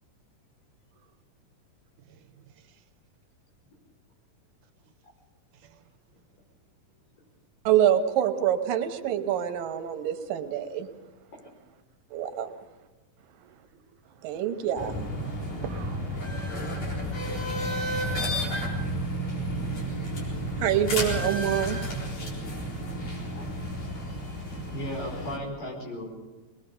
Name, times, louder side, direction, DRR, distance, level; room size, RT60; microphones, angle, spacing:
voice 1, 7.7-10.9 12.1-12.5 14.2-15.1 20.6-22.1, right 10 dB, 90° right, 7 dB, 2.9 m, -26 dB
sound 1, 14.8-25.4, equal, 55° left, 5.6 m, -31 dB
voice 2, 15.6-18.9, right 9 dB, 75° right, 8 dB, 2.2 m, -46 dB
voice 3, 24.7-26.1, equal, 75° left, 0 dB, 6.7 m, -36 dB
23.5 x 21.0 x 5.4 m, 1.1 s
omnidirectional pair, 3.9 m